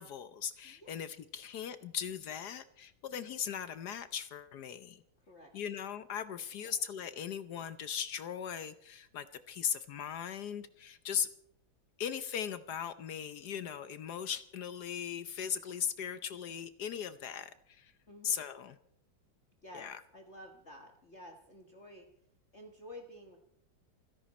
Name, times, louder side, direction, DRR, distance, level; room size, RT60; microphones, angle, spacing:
voice 1, 0.0-5.0 5.5-11.3 12.0-17.9 18.2-18.8 19.7-20.0, left 8 dB, 65° left, 12 dB, 1.2 m, -38 dB
voice 2, 5.2-5.5 6.6-6.8 18.1-18.4 19.6-22.0 22.5-23.4, left 1 dB, 35° left, 3 dB, 1.7 m, -51 dB
28.5 x 11.0 x 4.2 m, 0.70 s
omnidirectional pair, 2.1 m